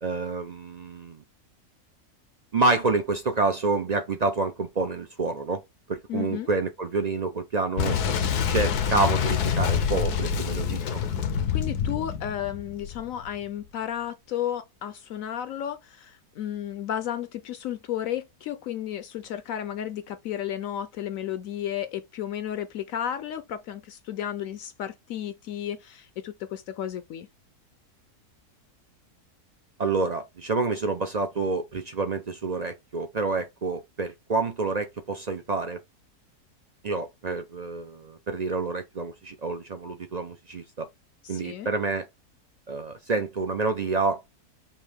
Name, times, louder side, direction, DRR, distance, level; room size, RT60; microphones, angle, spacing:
voice 1, 0.0-1.2 2.5-5.6 5.9-8.0 8.4-11.0 29.8-35.8 36.8-40.9 41.3-42.1 42.7-44.2, right 3 dB, 55° right, 0.4 m, -28 dB
voice 2, 6.1-6.5 11.5-27.3 41.2-41.7, left 10 dB, 70° left, 0.9 m, -33 dB
Boom, 7.8-13.3, left 7 dB, 85° left, 1.3 m, -26 dB
5.6 x 2.5 x 3.3 m
omnidirectional pair, 1.6 m